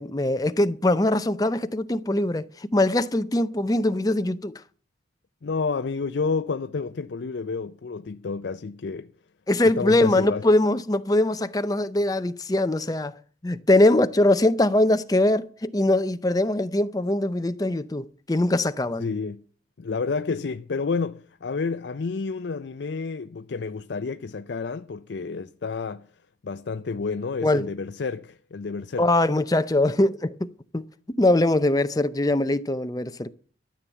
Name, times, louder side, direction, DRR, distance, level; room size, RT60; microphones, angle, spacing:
voice 1, 0.0-4.5 9.5-13.1 13.4-19.1 27.4-27.7 29.0-30.8 31.1-33.3, left 1 dB, 20° left, 0.6 m, -22 dB
voice 2, 5.4-9.1 9.8-10.4 19.0-19.4 19.8-26.1 26.4-29.1, left 4 dB, 70° left, 0.5 m, -30 dB
13.0 x 7.0 x 7.3 m
head